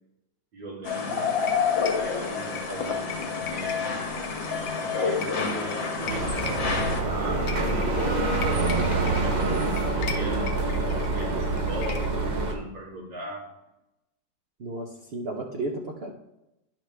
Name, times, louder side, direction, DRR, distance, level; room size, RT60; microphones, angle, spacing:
voice 1, 0.5-1.3 1.9-4.1 4.8-8.0 9.0-13.5, right 1 dB, 80° right, -4 dB, 3.1 m, -39 dB
sound 1, 0.8-7.0, left 5 dB, 85° left, 1.9 m, -28 dB
sound 2, 1.4-12.3, left 5 dB, 65° left, 0.6 m, -41 dB
sound 3, 6.0-12.5, right 2 dB, 30° right, 0.9 m, -26 dB
voice 2, 14.6-16.1, right 2 dB, 60° right, 1 dB, 0.6 m, -33 dB
10.5 x 5.7 x 3.3 m, 0.90 s
omnidirectional pair, 2.0 m